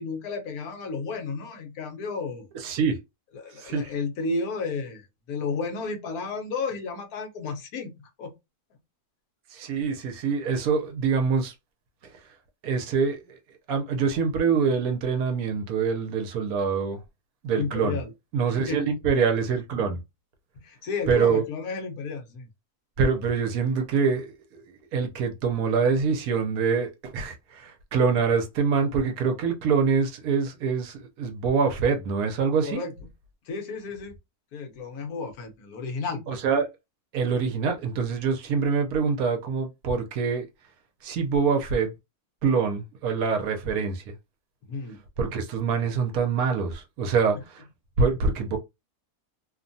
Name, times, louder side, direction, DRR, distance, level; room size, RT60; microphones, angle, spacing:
voice 1, 0.0-2.5 3.3-8.3 17.6-18.1 18.7-18.8 20.6-22.5 32.6-32.9 33.5-34.1 34.5-36.4 44.6-45.0, left 4 dB, 75° left, 1.2 m, -32 dB
voice 2, 2.6-3.0 3.6-3.9 9.5-11.5 12.6-13.4 13.7-17.0 17.4-18.0 18.3-20.0 21.1-21.4 23.0-24.6 24.9-32.8 36.3-36.7 37.1-40.5 41.0-41.9 42.4-44.1 45.2-47.6 48.0-48.6, right 5 dB, 70° right, 1.0 m, -25 dB
2.9 x 2.2 x 2.6 m
omnidirectional pair, 1.6 m